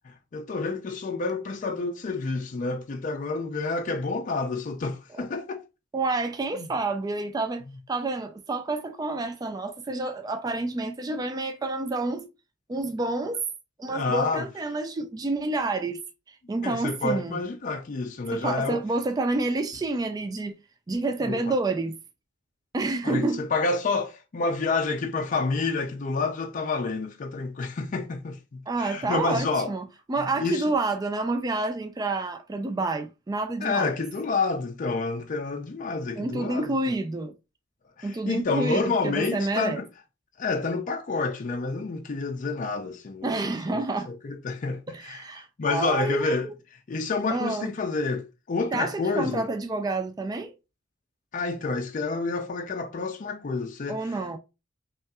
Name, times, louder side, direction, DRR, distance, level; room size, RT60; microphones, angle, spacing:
voice 1, 0.1-5.6 6.5-6.7 13.9-14.5 16.6-18.8 21.2-21.5 23.0-29.7 30.2-30.7 33.6-37.0 38.0-39.9 40.4-49.5 51.3-54.2, left 3 dB, 45° left, 0.4 m, -29 dB
voice 2, 5.9-12.3 12.7-13.4 13.8-16.0 16.3-17.4 18.3-20.5 20.9-22.0 22.7-23.4 28.7-33.9 36.1-37.3 38.0-39.8 43.2-44.1 44.9-46.4 47.3-47.7 48.7-50.5 53.9-54.4, right 2 dB, 20° right, 0.3 m, -29 dB
5.4 x 2.4 x 2.3 m
head